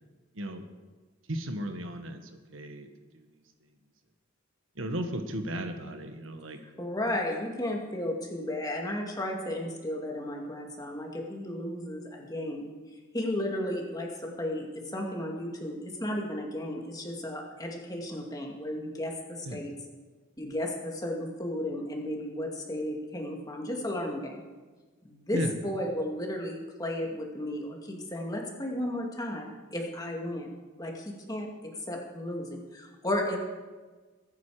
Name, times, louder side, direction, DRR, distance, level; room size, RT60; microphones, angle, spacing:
voice 1, 1.3-3.4 4.7-6.6 19.4-19.7 25.3-25.6, right 1 dB, 80° right, 6 dB, 1.5 m, -35 dB
voice 2, 6.8-12.7 13.1-19.7 20.4-24.4 25.0-30.5 30.8-33.4, left 1 dB, 20° left, 0 dB, 2.2 m, -34 dB
22.0 x 9.5 x 5.0 m, 1.3 s
head